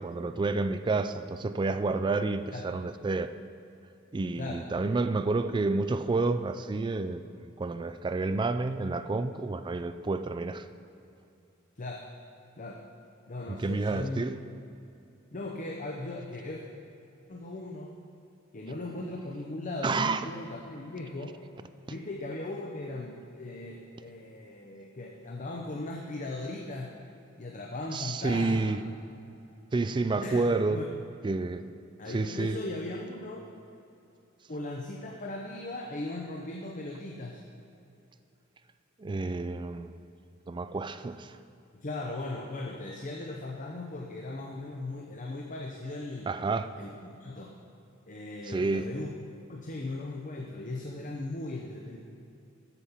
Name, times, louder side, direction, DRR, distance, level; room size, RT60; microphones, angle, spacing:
voice 1, 0.0-3.3 4.1-10.6 13.5-14.4 19.8-20.3 27.9-28.8 29.7-30.8 31.2-31.6 32.1-32.6 39.0-40.0 40.5-41.3 46.3-46.7 48.5-48.9, right 3 dB, 25° right, 11 dB, 0.3 m, -29 dB
voice 2, 13.3-14.3 15.3-16.7 17.3-18.0 18.5-21.4 21.9-26.9 27.4-28.8 30.2-30.9 32.0-33.5 34.5-37.4 41.8-46.3 46.8-47.5 48.1-49.2 49.5-52.0, left 2 dB, 40° left, 0 dB, 0.7 m, -38 dB
8.1 x 7.1 x 5.7 m, 2.7 s
head